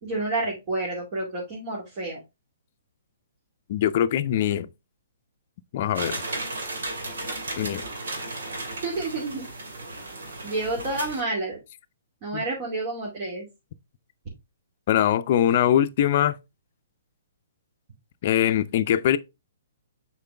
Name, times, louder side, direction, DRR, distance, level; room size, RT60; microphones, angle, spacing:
voice 1, 0.0-2.2 8.8-9.4 10.4-11.6 12.2-13.4, right 2 dB, 40° right, 2.9 m, -29 dB
voice 2, 3.7-4.7 5.7-6.2 7.6-7.8 12.3-12.4 14.9-16.3 18.2-19.2, left 11 dB, 50° left, 0.6 m, -22 dB
sound 1, 5.9-11.2, right 2 dB, 75° right, 2.2 m, -34 dB
6.8 x 4.7 x 3.4 m
hypercardioid pair, 135°, 0 cm